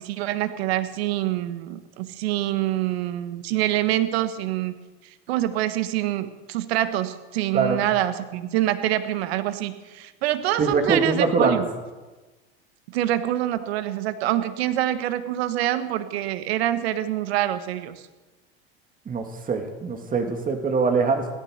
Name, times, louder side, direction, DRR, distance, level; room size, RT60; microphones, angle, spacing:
voice 1, 0.0-4.7 5.3-11.7 12.9-18.0, right 13 dB, 75° right, 11 dB, 1.4 m, -25 dB
voice 2, 10.6-11.6 19.1-21.3, right 4 dB, 25° right, 5 dB, 2.4 m, -23 dB
16.5 x 12.5 x 6.6 m, 1.2 s
supercardioid pair, 115°, 31 cm